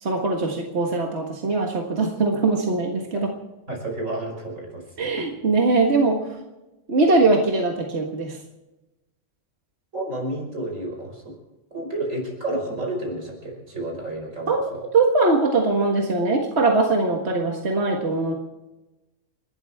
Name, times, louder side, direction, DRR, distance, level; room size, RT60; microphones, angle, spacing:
voice 1, 0.0-3.3 5.0-6.2 6.9-8.4 14.5-14.6 14.9-18.3, right 3 dB, 55° right, 1 dB, 1.9 m, -21 dB
voice 2, 3.7-5.2 9.9-11.4 11.7-14.9, right 1 dB, 90° right, 1 dB, 5.7 m, -31 dB
29.5 x 12.5 x 3.6 m, 1.0 s
omnidirectional pair, 1.3 m